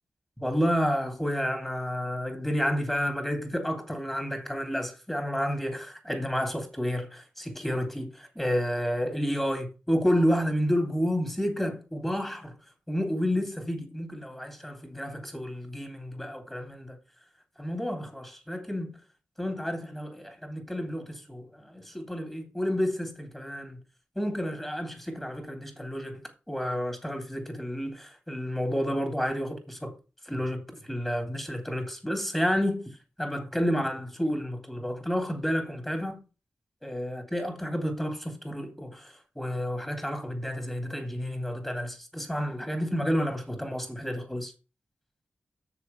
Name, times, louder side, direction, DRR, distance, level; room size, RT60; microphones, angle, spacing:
voice 1, 0.4-12.5 12.9-17.0 17.6-19.0 19.4-23.8 24.2-26.2 26.5-29.9 30.3-32.9 33.2-36.2 36.8-44.5, equal, 5° left, 3.3 m, -30 dB
7.2 x 6.7 x 7.1 m
cardioid pair, 55°, 4 cm